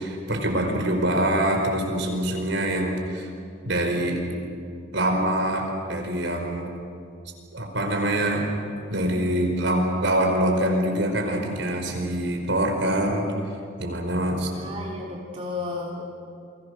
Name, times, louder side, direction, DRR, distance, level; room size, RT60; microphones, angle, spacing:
voice 1, 0.0-3.3 3.6-4.2 4.9-6.6 7.5-8.4 8.9-13.3 13.8-14.5, right 1 dB, 65° right, 3 dB, 4.9 m, -24 dB
voice 2, 14.5-16.1, left 3 dB, 30° right, -3 dB, 3.3 m, -33 dB
29.5 x 23.5 x 6.6 m, 2.4 s
head